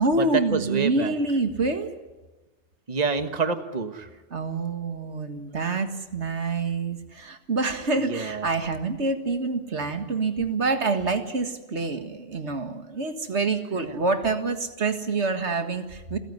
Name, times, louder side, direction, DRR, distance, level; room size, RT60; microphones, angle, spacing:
voice 1, 0.0-1.9 4.3-16.2, right 3 dB, 85° right, 8 dB, 2.0 m, -27 dB
voice 2, 0.5-1.1 2.9-4.1 5.6-5.8 8.1-8.5 13.7-14.0, right 4 dB, 35° right, 9 dB, 1.5 m, -28 dB
28.0 x 15.5 x 9.5 m, 1.1 s
omnidirectional pair, 1.1 m